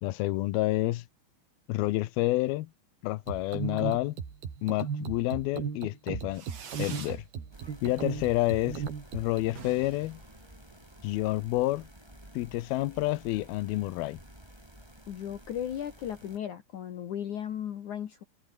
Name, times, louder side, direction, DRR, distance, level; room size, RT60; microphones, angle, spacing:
voice 1, 0.0-1.1 1.7-2.7 3.0-4.2 4.6-6.5 6.8-7.3 7.8-8.8 9.1-10.2 11.0-11.9 12.3-14.2, left 17 dB, 85° left, 2.7 m, -29 dB
sound 1, 3.3-9.5, right 7 dB, 80° right, 5.7 m, -36 dB
Fireworks, 6.3-7.2 7.6-8.1 8.4-8.5 8.8-8.9 9.1-9.2 9.5-11.1, right 7 dB, 45° right, 3.6 m, -46 dB
sound 2, 7.5-16.4, right 1 dB, 5° right, 5.9 m, -52 dB
voice 2, 15.1-18.2, left 9 dB, 60° left, 2.8 m, -36 dB
omnidirectional pair, 4.4 m